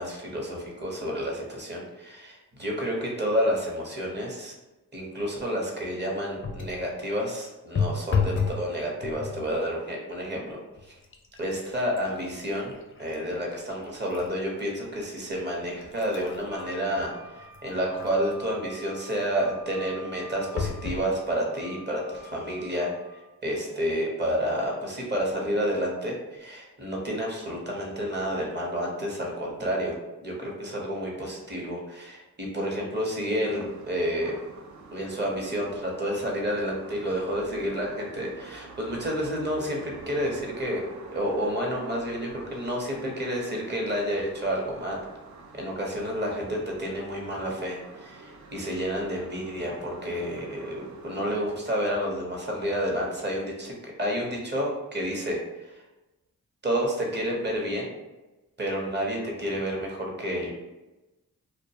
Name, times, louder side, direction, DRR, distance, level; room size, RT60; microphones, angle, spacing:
voice 1, 0.0-4.5 4.9-10.6 10.9-11.0 11.4-12.7 13.0-34.4 34.9-40.8 41.1-45.0 45.5-55.8 56.6-57.9 58.6-60.5, equal, 30° right, -2 dB, 0.8 m, -30 dB
sound 1, 6.4-6.9 7.8-8.7 9.0-9.5 10.2-10.4 10.8-14.4 14.8-14.9 15.6-18.3 20.6-21.1 21.8-21.9 22.1-22.2, left 5 dB, 35° left, 0.4 m, -32 dB
Wind instrument woodwind instrument, 16.5-23.2, left 1 dB, 80° right, 0.9 m, -48 dB
sound 2, 33.4-51.6, right 3 dB, 55° right, 0.5 m, -47 dB
2.4 x 2.1 x 2.7 m, 1.1 s
cardioid pair, 60°, 35 cm